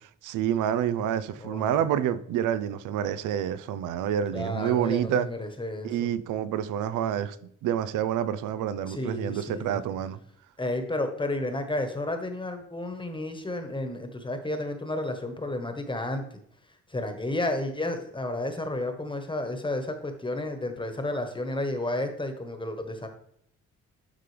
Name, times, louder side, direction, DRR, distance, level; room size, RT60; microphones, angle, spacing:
voice 1, 0.0-5.3 5.8-10.2, right 10 dB, 85° right, 0.6 m, -28 dB
voice 2, 1.4-1.8 4.3-6.1 8.9-9.8 10.6-16.2 16.9-23.1, left 1 dB, 15° left, 1.2 m, -32 dB
11.0 x 3.8 x 3.3 m
cardioid pair, 90°, 30 cm